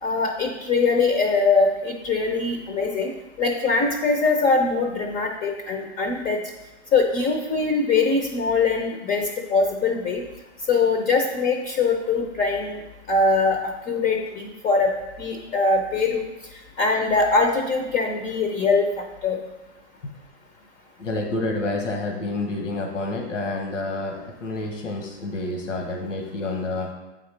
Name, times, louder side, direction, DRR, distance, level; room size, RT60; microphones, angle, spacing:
voice 1, 0.0-3.1 3.4-6.4 6.9-10.2 10.7-12.8 13.1-14.9 15.2-16.2 16.8-19.4, left 4 dB, 20° left, 3 dB, 0.5 m, -22 dB
voice 2, 21.0-26.9, left 2 dB, 90° left, 3 dB, 1.1 m, -28 dB
8.0 x 4.0 x 3.2 m, 1.0 s
hypercardioid pair, 120°, 36 cm